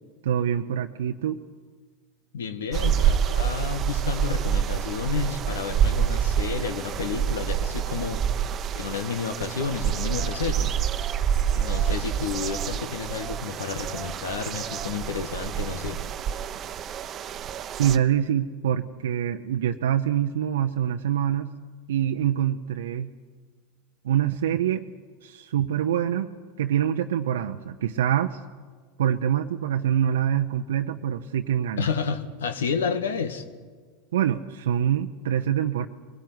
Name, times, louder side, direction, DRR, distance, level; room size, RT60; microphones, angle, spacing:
voice 1, 0.2-1.4 17.8-21.5 21.9-23.1 24.0-24.9 25.2-26.3 26.6-28.4 29.0-31.9 34.1-35.9, right 10 dB, 80° right, 5 dB, 0.8 m, -25 dB
voice 2, 2.3-8.2 8.7-10.7 11.5-16.0 31.8-33.4, left 6 dB, 85° left, 10 dB, 1.6 m, -30 dB
sound 1, 2.7-18.0, right 9 dB, 40° right, 1.0 m, -27 dB
22.0 x 17.0 x 9.6 m, 1.5 s
hypercardioid pair, 95°, 0 cm